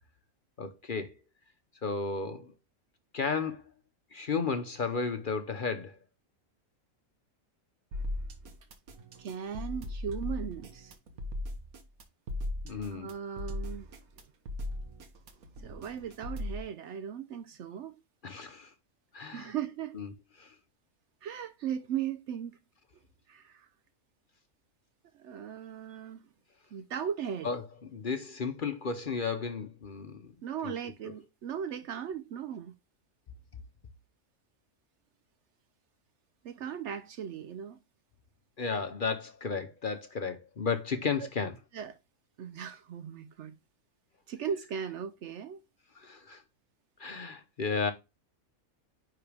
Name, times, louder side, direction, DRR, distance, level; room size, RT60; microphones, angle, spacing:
voice 1, 0.6-1.2 1.8-2.5 3.1-3.7 4.1-6.0 12.6-13.1 18.2-18.7 19.1-19.5 19.9-20.1 20.4-20.5 27.4-27.7 27.9-30.3 30.6-30.7 38.6-41.5 45.9-46.4 47.0-47.9, left 5 dB, 45° left, 0.8 m, -33 dB
sound 1, 7.9-16.6, left 1 dB, 80° right, 1.6 m, -38 dB
voice 2, 9.2-11.0 12.8-13.9 15.6-18.0 19.3-20.0 21.2-22.6 23.3-23.7 25.1-26.2 26.7-27.5 30.4-32.7 36.4-37.8 41.2-41.3 41.7-42.0 42.4-43.6 44.3-45.6, right 8 dB, 65° right, 0.8 m, -38 dB
9.9 x 3.9 x 3.4 m
omnidirectional pair, 1.5 m